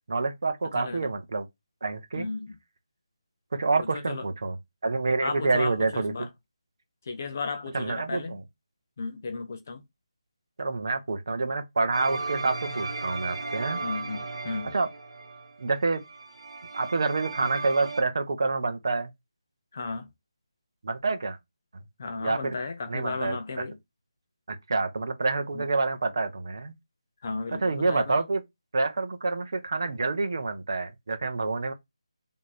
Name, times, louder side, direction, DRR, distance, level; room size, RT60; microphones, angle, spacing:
voice 1, 0.1-1.5 1.8-2.3 3.5-4.6 4.8-6.3 7.7-8.4 10.6-13.8 14.7-14.9 15.6-16.0 16.7-19.1 20.8-21.4 22.2-22.6 22.9-23.6 24.5-26.7 27.5-28.4 28.7-31.7, right 3 dB, 45° right, 0.9 m, -27 dB
voice 2, 0.7-1.1 2.1-2.5 3.9-4.2 5.2-6.3 7.1-8.4 9.0-9.8 13.8-14.2 14.4-14.7 19.7-20.1 22.0-23.8 25.5-25.7 27.2-28.2, left 4 dB, 25° left, 0.4 m, -34 dB
sound 1, 11.9-18.0, right 3 dB, 70° right, 1.4 m, -36 dB
3.6 x 3.1 x 4.1 m
figure-of-eight pair, 180°, 3 cm